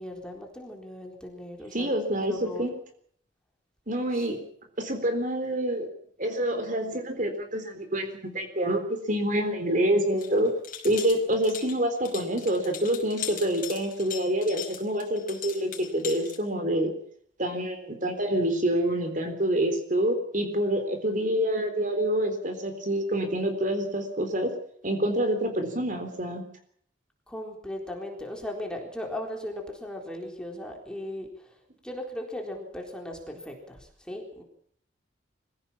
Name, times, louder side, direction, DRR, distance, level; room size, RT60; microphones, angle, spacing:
voice 1, 0.0-1.9 2.3-2.7 4.1-4.3 27.3-31.6 31.8-34.4, left 1 dB, 5° left, 0 dB, 3.9 m, -37 dB
voice 2, 1.7-2.7 3.9-4.4 4.8-5.9 6.2-10.5 10.8-16.9 17.4-24.5 24.8-26.4, right 1 dB, 40° right, 6 dB, 3.9 m, -27 dB
sound 1, 10.2-16.4, left 9 dB, 45° left, 5.1 m, -39 dB
24.5 x 16.5 x 7.3 m, 0.65 s
head